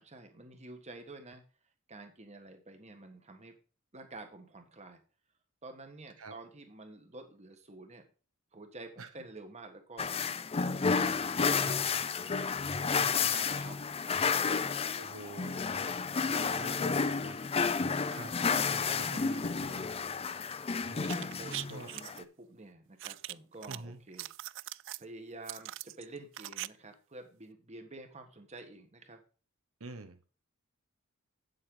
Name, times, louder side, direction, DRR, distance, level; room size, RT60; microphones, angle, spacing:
voice 1, 0.0-1.4 1.9-3.5 3.9-5.0 5.6-8.1 8.5-10.2 10.6-11.9 12.6-12.8 13.1-14.7 16.4-17.5 20.9-24.3 25.0-29.2, right 2 dB, 35° right, 1.5 m, -50 dB
sound 1, 10.0-22.2, left 5 dB, 30° left, 0.5 m, -31 dB
voice 2, 13.0-13.3 15.0-17.3 18.1-18.3 18.7-19.8 20.8-21.1 21.7-21.9 23.7-24.0 29.8-30.2, right 3 dB, 90° right, 1.2 m, -47 dB
sound 2, 21.0-22.2 23.0-23.8 24.1-25.0 25.4-26.7 26.9-27.0, right 16 dB, 60° right, 0.3 m, -41 dB
8.5 x 7.6 x 3.9 m
head